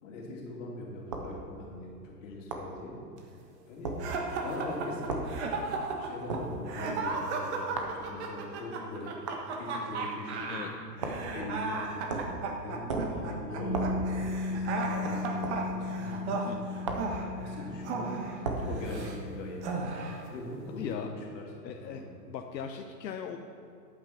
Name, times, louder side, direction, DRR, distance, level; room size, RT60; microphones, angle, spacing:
voice 1, 0.0-3.0 3.6-5.3 6.0-9.1 9.6-10.9 11.3-12.4 12.6-14.1 14.5-19.6 20.3-21.4 21.7-22.0, left 2 dB, 45° left, -2 dB, 3.0 m, -41 dB
sound 1, 1.1-1.3 2.5-2.7 3.8-4.0 5.1-5.3 6.3-6.5 7.8-8.0 9.3-9.5 11.0-11.3 12.1-12.4 12.9-13.2 13.7-14.0 15.4-15.6 16.8-17.2 18.4-18.7, right 3 dB, 20° right, 0.4 m, -34 dB
sound 2, 4.0-19.2 19.6-20.3, right 4 dB, 40° right, 1.5 m, -35 dB
Bass guitar, 13.6-19.8, left 2 dB, 75° right, 3.0 m, -36 dB
voice 2, 16.0-16.6 20.7-21.1 21.6-22.0 22.3-23.4, left 8 dB, 80° left, 4 dB, 0.9 m, -39 dB
10.5 x 8.7 x 6.0 m, 2.7 s
hypercardioid pair, 160°, 50 cm